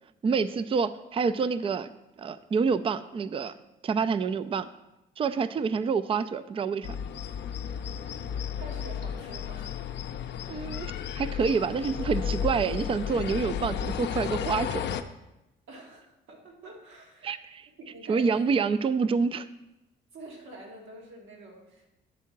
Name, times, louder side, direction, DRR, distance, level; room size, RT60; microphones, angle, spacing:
voice 1, 0.2-1.9 2.2-3.5 3.8-4.7 5.2-6.9 10.5-14.8 17.2-17.7 18.1-19.5, right 5 dB, 30° right, 14 dB, 0.3 m, -27 dB
sound 1, 6.8-15.0, left 8 dB, 60° left, 0.5 m, -33 dB
voice 2, 8.6-9.7 15.7-17.3 17.8-18.5 20.1-21.9, right 1 dB, 80° right, -1 dB, 1.9 m, -46 dB
8.2 x 3.7 x 5.8 m, 0.93 s
cardioid pair, 90°, 20 cm